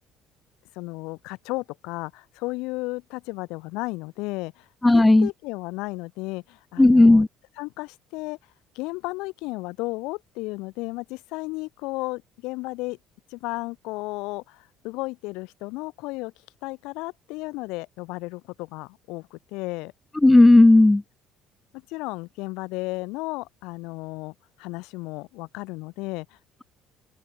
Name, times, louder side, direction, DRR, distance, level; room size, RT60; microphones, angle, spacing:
voice 1, 0.7-7.2 7.6-8.4 8.7-13.0 13.3-16.3 16.6-19.9 21.7-26.4, left 23 dB, 85° left, 5.8 m, -34 dB
voice 2, 4.8-5.3 6.8-7.3 20.2-21.0, left 2 dB, 10° left, 0.4 m, -13 dB
open air
cardioid pair, 160°, 0 cm